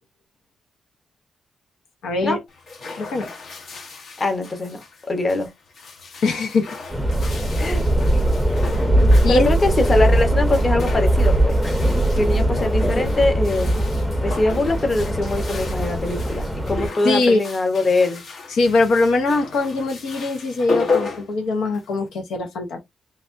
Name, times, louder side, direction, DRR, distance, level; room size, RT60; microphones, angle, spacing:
voice 1, 2.0-2.4 2.9-3.3 6.2-6.7 9.2-9.5 17.0-17.4 18.5-22.8, left 3 dB, 85° left, 0.8 m, -21 dB
sound 1, 2.5-22.1, left 4 dB, 65° left, 1.0 m, -34 dB
voice 2, 4.2-4.8 5.1-5.5 7.6-7.8 9.3-11.6 12.2-13.8 14.2-18.2, left 2 dB, 35° left, 1.0 m, -22 dB
sound 2, 6.9-16.9, right 1 dB, ahead, 0.6 m, -20 dB
3.3 x 2.4 x 2.5 m
cardioid pair, 85°, 0 cm